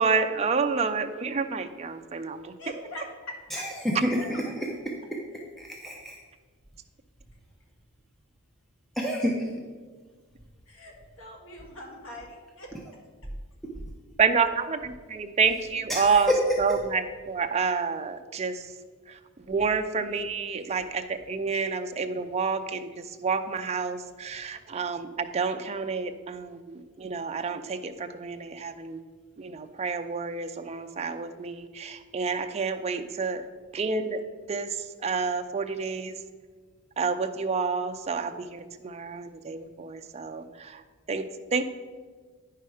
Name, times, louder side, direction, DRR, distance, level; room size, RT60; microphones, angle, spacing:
voice 1, 0.0-2.5 14.2-16.3 16.6-18.7 19.1-29.0 29.4-33.5 33.7-34.2 34.5-36.2 37.0-40.8 41.1-41.6, right 5 dB, 30° right, 7 dB, 0.4 m, -29 dB
voice 2, 2.6-3.6 10.7-12.7, left 1 dB, 60° left, 0 dB, 1.8 m, -42 dB
voice 3, 3.5-4.3 4.6-4.9 5.6-6.2 9.0-9.5 15.9-16.4 16.7-16.8, equal, ahead, -2 dB, 0.7 m, -28 dB
9.2 x 5.7 x 4.8 m, 1.5 s
head